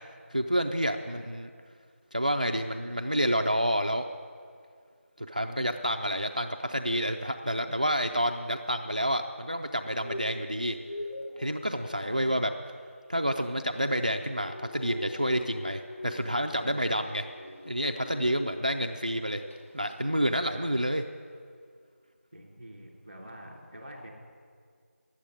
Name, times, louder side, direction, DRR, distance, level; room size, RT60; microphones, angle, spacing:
voice 1, 0.3-1.5 2.1-4.0 5.2-10.8 11.4-12.5 13.1-17.3 17.7-19.4 19.7-21.0, equal, 35° right, 5 dB, 0.4 m, -29 dB
sound 1, 9.9-19.0 19.3-19.6 19.9-20.0, left 1 dB, 65° left, 1.7 m, -43 dB
voice 2, 12.0-12.3 16.6-16.8 22.3-24.1, equal, 5° left, -7 dB, 0.8 m, -46 dB
11.5 x 8.4 x 9.7 m, 2.1 s
figure-of-eight pair, 180°, 8 cm